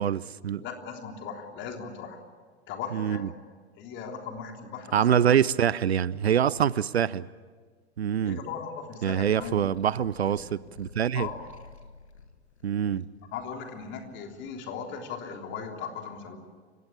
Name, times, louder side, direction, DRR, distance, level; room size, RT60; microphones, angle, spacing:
voice 1, 0.0-0.6 2.9-3.3 4.9-7.3 8.0-8.4 9.0-11.3 12.6-13.0, right 9 dB, 75° right, 0.6 m, -25 dB
voice 2, 0.6-2.2 2.7-3.4 3.8-5.2 8.2-9.7 10.4-10.6 11.1-11.4 13.3-16.4, left 6 dB, 35° left, 3.5 m, -38 dB
sound 1, 9.2-14.5, left 3 dB, 80° left, 1.9 m, -51 dB
29.0 x 16.5 x 8.7 m
figure-of-eight pair, 95°, 33 cm